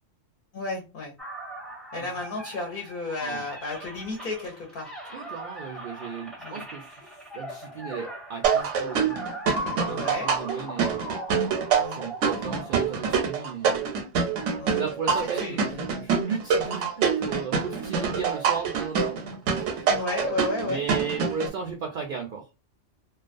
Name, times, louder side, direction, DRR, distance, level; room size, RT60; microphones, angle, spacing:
voice 1, 0.5-1.1 1.9-4.9 6.4-6.6 9.8-10.3 11.8-12.0 14.6-14.8 15.3-15.6 16.6-16.8 19.9-21.1, left 2 dB, 50° left, 1 dB, 0.8 m, -33 dB
sound 1, 1.2-13.5, equal, ahead, 0.5 m, -39 dB
voice 2, 5.1-9.2 9.6-11.0 11.9-13.8 14.8-20.0 20.3-22.5, right 6 dB, 60° right, 2 dB, 0.6 m, -35 dB
sound 2, 8.4-21.5, right 6 dB, 85° right, 0.9 m, -26 dB
2.4 x 2.3 x 2.4 m, 0.30 s
omnidirectional pair, 1.2 m